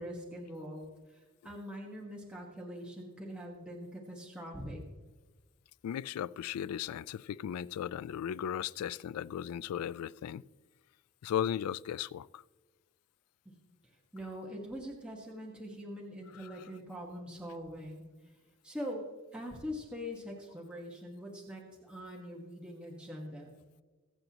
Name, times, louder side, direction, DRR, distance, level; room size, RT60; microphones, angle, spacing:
voice 1, 0.0-4.8 13.4-13.6 14.1-18.4 18.6-19.1 19.3-23.5, equal, 5° right, 1.4 m, -43 dB
voice 2, 5.8-10.4 11.2-12.4 16.4-16.5, left 9 dB, 90° left, 0.3 m, -36 dB
23.5 x 7.8 x 2.9 m
head